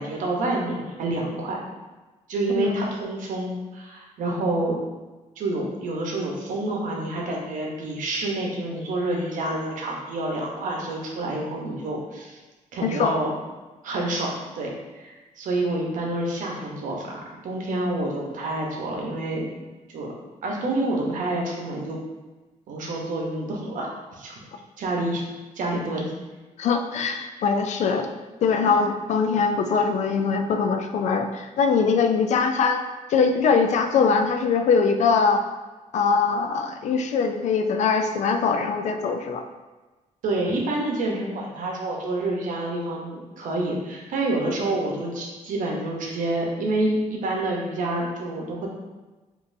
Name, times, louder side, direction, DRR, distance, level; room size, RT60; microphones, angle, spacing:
voice 1, 0.0-1.6 2.3-4.7 5.4-12.4 12.7-13.3 13.8-14.7 14.9-19.4 19.9-20.1 20.4-22.0 22.7-24.4 24.8-25.2 25.5-26.1 28.6-28.7 40.2-48.7, right 2 dB, 75° right, -1 dB, 0.9 m, -28 dB
voice 2, 12.8-13.1 26.6-28.1 28.4-32.8 33.1-35.4 35.9-39.4, left 5 dB, 60° left, 6 dB, 0.4 m, -22 dB
5.2 x 2.7 x 2.6 m, 1.2 s
cardioid pair, 115°, 13 cm